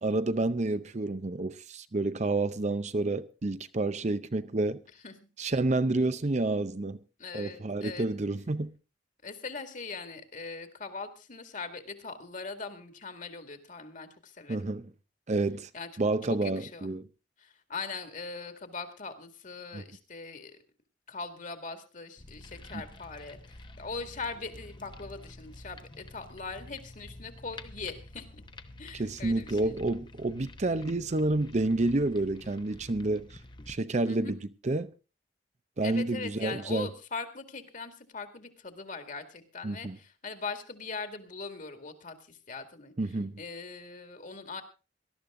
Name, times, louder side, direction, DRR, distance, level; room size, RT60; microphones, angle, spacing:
voice 1, 0.0-4.8 5.4-7.0 7.3-8.7 14.5-14.9 15.3-15.7 16.0-17.1 19.7-19.8 28.9-33.3 33.7-34.4 34.6-34.9 35.8-36.9 39.6-40.0 43.0-43.3, right 2 dB, 40° right, 0.6 m, -29 dB
voice 2, 7.2-8.1 9.2-14.7 15.7-15.9 16.3-16.9 17.4-20.6 21.1-28.4 28.8-29.8 34.0-34.3 35.8-42.9 43.4-44.6, left 4 dB, 45° left, 2.1 m, -41 dB
sound 1, 22.2-33.8, left 2 dB, 25° left, 0.9 m, -49 dB
19.0 x 12.5 x 3.7 m
head